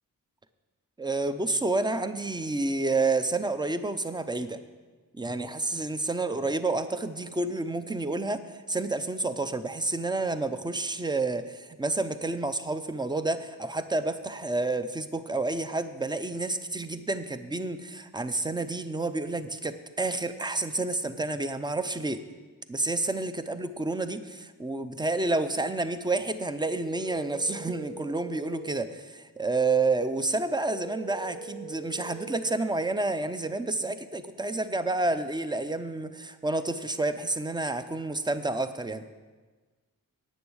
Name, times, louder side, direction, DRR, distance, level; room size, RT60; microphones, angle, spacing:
voice 1, 1.0-4.6 5.2-22.2 22.7-39.0, right 2 dB, 15° right, 11 dB, 0.5 m, -29 dB
sound 1, 26.7-28.7 30.7-32.7, right 3 dB, 65° right, 1.0 m, -41 dB
10.0 x 8.9 x 6.3 m, 1.3 s
wide cardioid pair, 140°, 35 cm